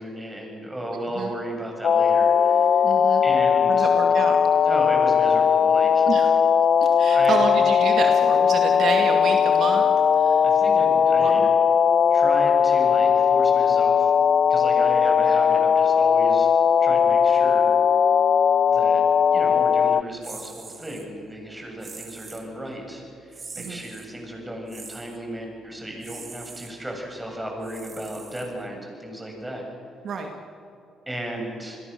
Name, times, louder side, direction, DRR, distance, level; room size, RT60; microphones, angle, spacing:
voice 1, 0.0-2.8 3.2-3.9 4.6-6.1 7.1-7.4 10.4-11.5 12.1-14.1 14.5-16.5 16.8-17.8 18.7-19.0 19.3-29.6 31.1-31.8, right 1 dB, 10° right, 1 dB, 7.7 m, -35 dB
voice 2, 0.9-1.3 2.8-3.2 3.7-4.4 6.1-6.3 6.8-9.9 10.2-10.4 11.2-11.5 23.6-23.8 30.0-30.3, right 5 dB, 60° right, 3 dB, 2.4 m, -29 dB
sound 1, 1.8-20.0, left 7 dB, 50° left, 0.5 m, -19 dB
sound 2, 20.2-21.1 21.8-22.5 23.3-24.1 24.7-25.2 26.0-26.7 27.6-28.8, right 4 dB, 35° right, 2.8 m, -42 dB
28.5 x 21.0 x 7.0 m, 2.7 s
cardioid pair, 90°, 0 cm